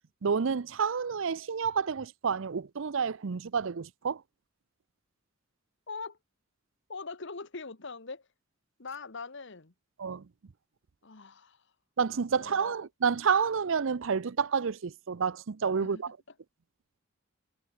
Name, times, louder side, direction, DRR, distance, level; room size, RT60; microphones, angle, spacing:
voice 1, 0.2-4.2 10.0-10.2 12.0-16.1, right 6 dB, 65° right, 0.6 m, -29 dB
voice 2, 5.9-6.2 6.9-8.2 8.8-9.7 11.0-11.6 12.3-12.7 15.8-16.0, left 4 dB, 60° left, 1.5 m, -42 dB
head